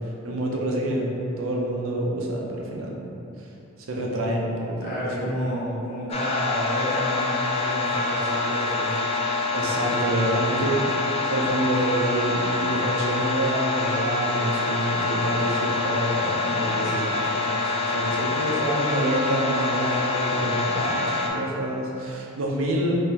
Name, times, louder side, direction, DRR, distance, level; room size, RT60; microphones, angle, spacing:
voice 1, 0.2-1.1 1.4-3.1 3.9-5.0 9.5-10.8 11.3-23.1, right 1 dB, 80° right, -1 dB, 0.6 m, -27 dB
voice 2, 4.8-9.0 16.6-17.1, equal, 50° left, -9 dB, 1.1 m, -30 dB
sound 1, 6.1-21.3, left 3 dB, 30° left, 0.3 m, -26 dB
3.9 x 2.9 x 2.8 m, 2.8 s
head